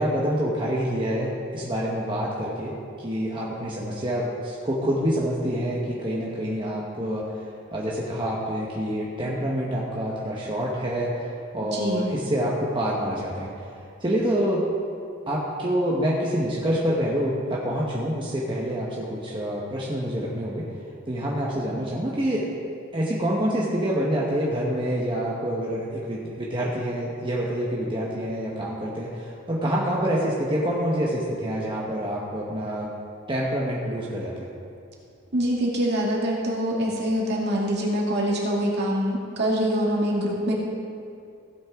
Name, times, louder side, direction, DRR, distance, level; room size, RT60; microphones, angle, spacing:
voice 1, 0.0-2.7 3.0-7.3 7.7-13.5 14.0-14.6 15.3-20.7 21.1-22.5 22.9-32.9 33.3-34.5, equal, 25° right, -5 dB, 1.1 m, -27 dB
voice 2, 11.7-12.1 35.3-40.5, equal, 50° right, -3 dB, 2.1 m, -24 dB
16.0 x 8.9 x 3.6 m, 2.4 s
head